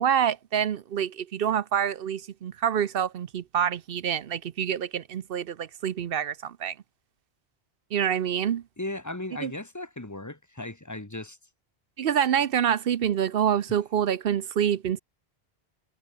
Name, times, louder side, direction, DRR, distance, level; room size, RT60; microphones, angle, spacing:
voice 1, 0.0-6.7 7.9-8.6 9.4-9.5 12.0-15.0, right 9 dB, 65° right, 0.8 m, -26 dB
voice 2, 8.8-11.4, left 2 dB, 15° left, 1.5 m, -36 dB
omnidirectional pair, 1.1 m